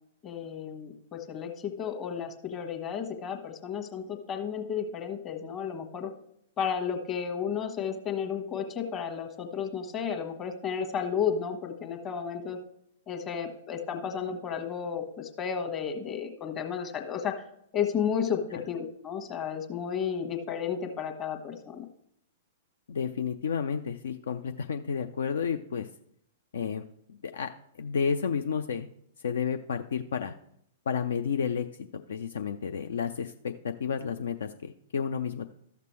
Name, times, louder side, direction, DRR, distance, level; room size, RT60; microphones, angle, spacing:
voice 1, 0.2-6.1 6.6-12.6 13.1-17.3 17.7-21.8, left 7 dB, 25° left, 5 dB, 1.2 m, -33 dB
voice 2, 22.9-25.9 26.5-26.8 27.1-27.5 27.8-28.9 29.2-30.3 30.9-31.7 31.9-35.4, left 6 dB, 60° left, 8 dB, 0.4 m, -31 dB
13.0 x 6.6 x 3.2 m, 0.72 s
figure-of-eight pair, 105°, 0 cm